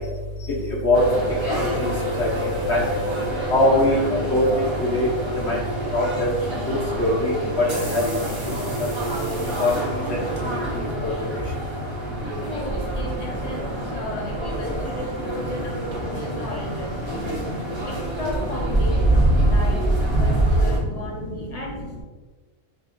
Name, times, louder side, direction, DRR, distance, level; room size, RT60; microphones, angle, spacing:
sound 1, 0.9-20.8, right 1 dB, 25° right, 0.7 m, -26 dB
voice 1, 1.5-1.9 2.2-2.3 2.7-2.8 3.5-4.0 4.3-5.1 5.5-5.6 5.9-6.3 6.7-7.3 7.9-8.0 9.6-9.7, left 1 dB, 60° left, -4 dB, 1.1 m, -20 dB
voice 2, 12.4-17.2 17.8-19.9 20.2-22.0, left 1 dB, 40° left, -1 dB, 0.7 m, -34 dB
6.5 x 2.6 x 2.5 m, 1.3 s
omnidirectional pair, 1.3 m